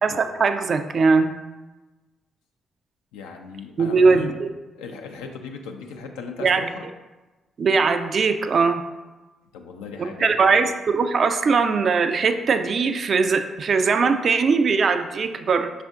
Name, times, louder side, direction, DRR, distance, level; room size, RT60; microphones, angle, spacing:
voice 1, 0.0-1.3 3.8-4.5 6.4-6.7 7.6-8.8 10.2-15.7, right 4 dB, 55° right, 9 dB, 0.3 m, -20 dB
voice 2, 3.1-4.3 4.8-6.9 9.5-10.4, left 5 dB, 80° left, 3 dB, 0.4 m, -37 dB
5.4 x 2.5 x 3.5 m, 1.2 s
hypercardioid pair, 45°, 0 cm